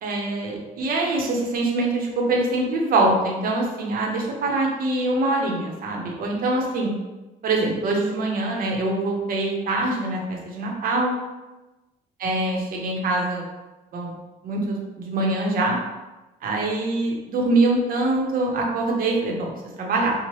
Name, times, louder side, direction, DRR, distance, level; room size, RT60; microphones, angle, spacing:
voice 1, 0.0-6.9 7.4-11.2 12.2-13.4 13.9-14.1 14.4-15.8 16.4-19.5 19.8-20.1, right 2 dB, 55° right, -1 dB, 0.7 m, -24 dB
2.9 x 2.1 x 3.0 m, 1.1 s
cardioid pair, 110°, 17 cm